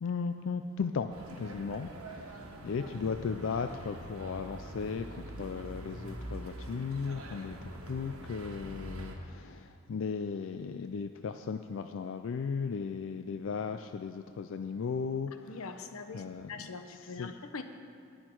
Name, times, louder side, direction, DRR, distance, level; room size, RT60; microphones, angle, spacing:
voice 1, 0.0-1.1 1.4-5.1 5.4-15.6 16.1-16.5 17.2-17.3, left 5 dB, 60° left, 8 dB, 0.4 m, -36 dB
sound 1, 1.1-9.2, right 1 dB, 90° right, 1.4 m, -44 dB
voice 2, 15.4-17.6, left 4 dB, 90° left, 8 dB, 0.8 m, -43 dB
19.0 x 6.5 x 4.5 m, 2.5 s
head